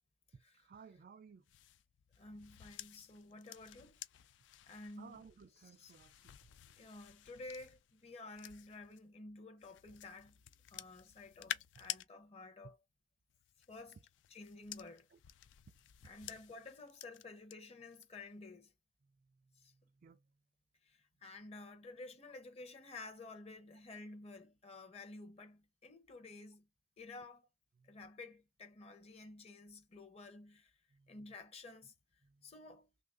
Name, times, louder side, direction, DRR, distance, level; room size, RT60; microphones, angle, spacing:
voice 1, 0.3-1.4 5.0-6.5 6.8-6.9 12.6-12.7 15.1-15.2 20.0-20.2 27.8-28.0 30.9-31.2, right 5 dB, 50° right, 0.4 m, -58 dB
sound 1, 1.5-9.0 9.6-12.1 13.3-17.5 17.9-18.3, left 12 dB, 80° left, 0.3 m, -51 dB
voice 2, 2.2-4.0 4.7-5.2 5.6-5.9 6.8-10.4 10.7-12.8 13.7-14.0 14.3-15.1 16.0-18.7 19.6-19.7 20.9-26.6 27.0-27.4 27.9-30.7 31.1-31.9 32.4-32.9, left 2 dB, 35° left, 0.7 m, -52 dB
3.0 x 2.4 x 3.6 m
head